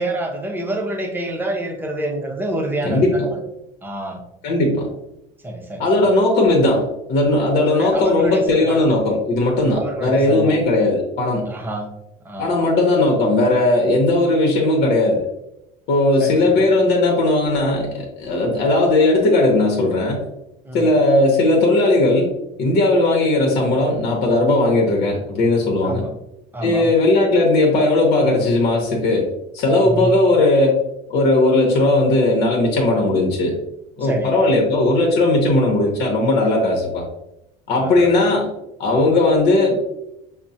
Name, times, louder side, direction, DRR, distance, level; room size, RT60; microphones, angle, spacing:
voice 1, 0.0-3.4 3.8-4.2 5.4-5.8 7.6-8.8 9.7-10.6 11.5-11.9 12.2-12.5 16.2-16.6 20.6-20.9 25.8-26.1 26.5-26.9 29.8-30.2 34.0-34.3 37.7-38.1, right 1 dB, 10° right, 1 dB, 0.8 m, -27 dB
voice 2, 2.8-3.3 4.4-4.9 5.8-11.4 12.4-15.2 15.9-20.2 20.7-22.3 22.6-26.1 26.6-29.3 29.5-30.8 31.1-33.6 34.0-37.0 37.7-38.5 38.8-39.9, left 2 dB, 60° left, -1 dB, 1.0 m, -17 dB
5.9 x 2.1 x 2.7 m, 0.87 s
supercardioid pair, 110°, 19 cm